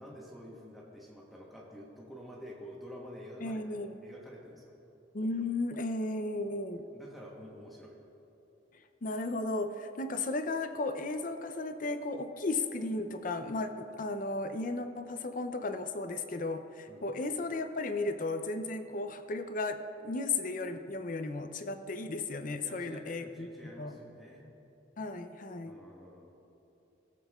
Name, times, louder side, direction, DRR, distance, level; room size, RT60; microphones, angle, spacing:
voice 1, 0.0-4.7 6.9-7.9 16.9-17.1 22.6-24.5 25.6-26.3, equal, ahead, -5 dB, 1.0 m, -49 dB
voice 2, 3.4-3.9 5.1-6.9 9.0-23.5 23.8-23.9 25.0-25.8, left 2 dB, 45° left, 8 dB, 0.5 m, -35 dB
18.0 x 7.5 x 2.4 m, 2.9 s
head